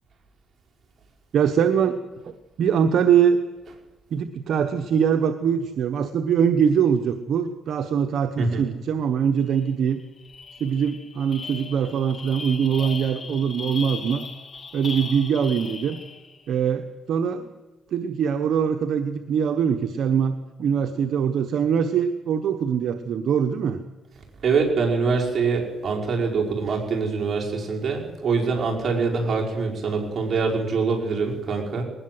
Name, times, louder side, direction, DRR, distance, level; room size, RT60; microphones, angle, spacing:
voice 1, 1.3-2.0 2.2-2.3 2.6-3.4 4.1-10.0 10.6-14.2 14.7-16.0 16.5-17.5 17.9-23.8, right 7 dB, 70° right, 7 dB, 1.2 m, -22 dB
sound 1, 9.6-9.7 10.0-16.4, left 5 dB, 40° left, 2.7 m, -38 dB
voice 2, 24.4-31.8, right 4 dB, 45° right, 0 dB, 5.4 m, -24 dB
20.5 x 19.0 x 7.9 m, 1.1 s
cardioid pair, 90°, 0 cm